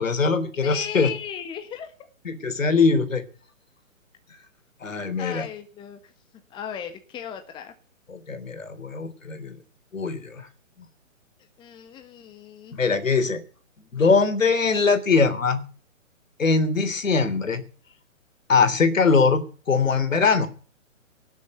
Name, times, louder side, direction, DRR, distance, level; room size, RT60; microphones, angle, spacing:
voice 1, 0.0-1.1 2.2-3.2 4.8-5.5 8.1-9.6 9.9-10.5 12.7-13.4 13.9-15.6 16.4-17.6 18.5-20.5, left 4 dB, 70° left, 9 dB, 3.4 m, -22 dB
voice 2, 0.6-1.9 5.2-6.1 6.5-7.7 11.6-12.8, left 8 dB, 10° left, 7 dB, 1.4 m, -36 dB
18.5 x 7.4 x 8.0 m, 0.41 s
figure-of-eight pair, 135°, 41 cm